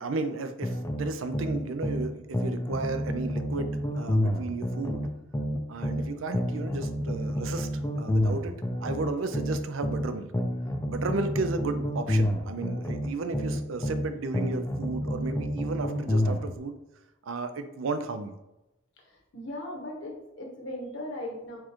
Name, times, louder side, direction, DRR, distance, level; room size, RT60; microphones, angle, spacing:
voice 1, 0.0-5.1 5.7-7.7 8.0-8.5 8.8-10.3 10.9-16.8 17.2-18.4, right 3 dB, 90° right, 9 dB, 0.5 m, -34 dB
sound 1, 0.6-2.1 2.3-6.1 6.3-10.1 10.3-14.1 14.3-16.5, equal, 15° left, 0.4 m, -29 dB
voice 2, 19.0-21.6, left 1 dB, 70° left, 0 dB, 1.1 m, -38 dB
4.6 x 2.5 x 4.3 m, 0.95 s
head